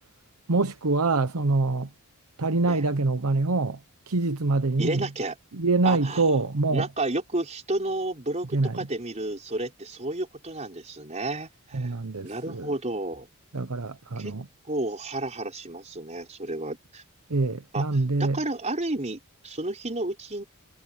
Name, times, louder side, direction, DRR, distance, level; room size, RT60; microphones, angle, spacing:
voice 1, 0.5-1.9 2.4-3.8 4.1-5.1 5.5-6.9 8.5-8.9 11.7-12.7 13.5-14.4 17.3-18.4, right 3 dB, 90° right, 1.0 m, -25 dB
voice 2, 4.8-5.4 5.8-6.4 6.7-11.9 12.2-13.3 14.2-14.3 14.7-17.0 17.7-20.4, right 2 dB, 30° right, 4.6 m, -31 dB
head